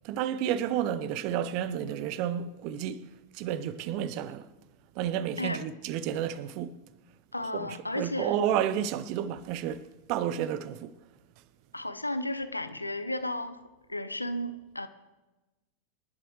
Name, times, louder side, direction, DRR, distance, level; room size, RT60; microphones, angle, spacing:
voice 1, 0.0-3.0 3.3-4.5 4.9-6.8 7.5-10.9, right 10 dB, 45° right, 0.7 m, -31 dB
voice 2, 7.3-8.4 11.7-14.9, left 1 dB, 85° left, 0.8 m, -34 dB
26.0 x 11.0 x 3.2 m
figure-of-eight pair, 90°, 0 cm